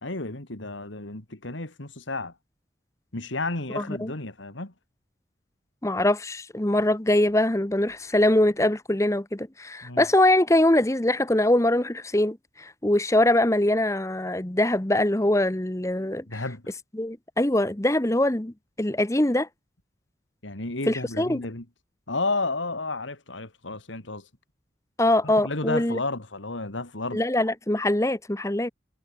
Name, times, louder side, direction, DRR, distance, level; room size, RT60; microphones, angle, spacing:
voice 1, 0.0-2.3 3.1-4.7 9.8-10.0 16.3-16.6 20.4-21.6 22.1-24.3 25.2-27.2, left 2 dB, 80° left, 2.9 m, -32 dB
voice 2, 3.8-4.1 5.8-16.4 16.9-19.5 20.9-21.4 25.0-26.0 27.1-28.7, left 1 dB, 15° left, 0.9 m, -23 dB
head